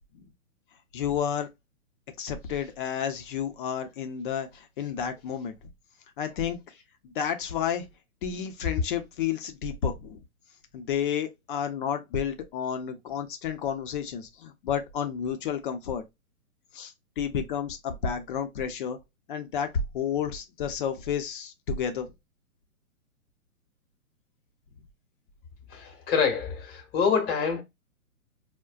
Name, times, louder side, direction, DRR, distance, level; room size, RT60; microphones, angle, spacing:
voice 1, 0.9-1.5 2.2-5.5 6.2-6.6 7.0-7.9 8.2-10.2 10.7-16.0 16.7-19.0 19.3-19.7 19.9-22.1, left 8 dB, 40° left, 0.7 m, -31 dB
voice 2, 25.7-27.6, left 6 dB, 20° left, 1.0 m, -26 dB
4.6 x 2.2 x 2.4 m
hypercardioid pair, 130°, 42 cm